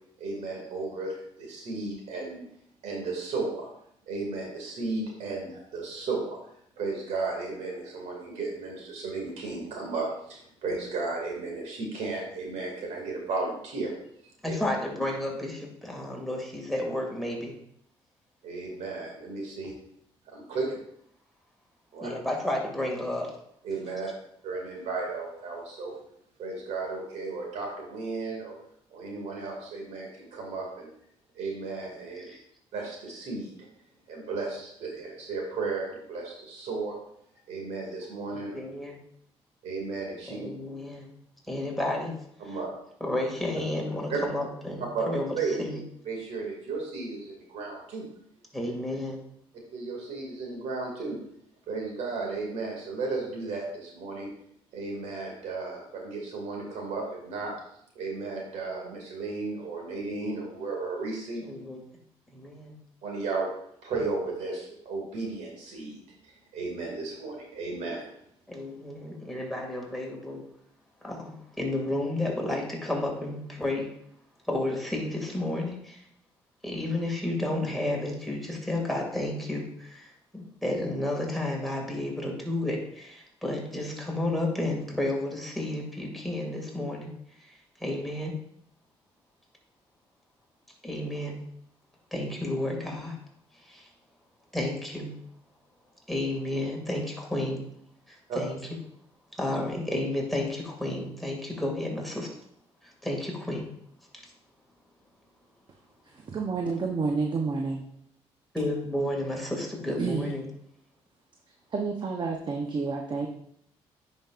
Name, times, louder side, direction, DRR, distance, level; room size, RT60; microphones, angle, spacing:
voice 1, 0.2-2.4 2.8-3.7 4.1-6.4 6.8-13.9 14.4-14.6 18.4-19.7 20.3-20.7 21.9-22.1 23.6-24.1 24.4-25.9 26.4-28.5 28.9-30.9 31.3-32.3 32.7-33.5 34.1-36.9 37.5-38.6 39.6-40.5 42.5-42.7 44.1-44.2 44.9-45.1 45.3-45.6 46.0-48.1 49.7-51.2 51.7-54.3 54.7-57.5 58.0-61.4 63.0-63.5 63.8-68.1 98.3-98.4, right 3 dB, 80° right, 0 dB, 2.3 m, -34 dB
voice 2, 14.4-17.5 22.0-23.3 32.2-32.4 38.3-39.0 40.3-41.1 41.5-42.1 43.0-45.8 48.5-49.2 61.4-61.8 62.3-62.8 68.5-70.4 71.0-71.3 71.6-73.9 74.5-76.0 76.6-87.1 87.8-88.4 90.8-91.4 92.1-93.2 93.7-93.9 94.5-95.1 96.1-97.6 98.1-98.6 99.3-102.3 102.8-103.6 108.5-110.5, left 1 dB, ahead, -1 dB, 2.2 m, -31 dB
voice 3, 106.2-107.8 110.0-110.3 111.7-113.3, right 4 dB, 40° right, 2 dB, 0.8 m, -29 dB
10.0 x 5.3 x 2.5 m, 0.71 s
cardioid pair, 75°, 11 cm